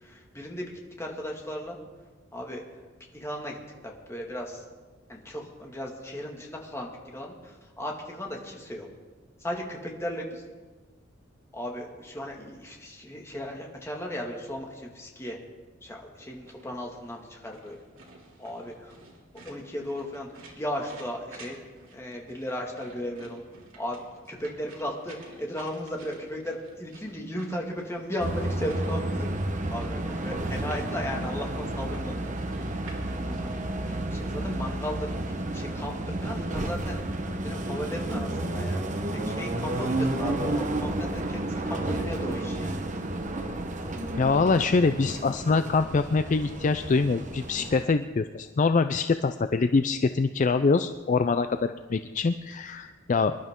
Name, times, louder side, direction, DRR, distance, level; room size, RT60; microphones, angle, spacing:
voice 1, 0.0-1.8 2.3-2.6 3.1-3.6 3.8-4.6 5.1-8.9 9.4-10.4 11.5-15.4 15.8-17.8 18.4-18.9 19.4-21.6 21.9-23.4 23.8-29.3 29.7-32.3 32.7-33.7 34.1-35.2 35.5-37.1 37.4-38.8 39.1-42.8, equal, 15° left, -1 dB, 2.0 m, -36 dB
sound 1, 16.2-33.6, right 2 dB, 80° right, 2.9 m, -52 dB
sound 2, 28.2-47.8, right 1 dB, 40° right, 1.1 m, -31 dB
voice 2, 44.2-53.4, left 4 dB, 40° left, 10 dB, 0.4 m, -24 dB
25.0 x 11.5 x 3.7 m, 1.3 s
head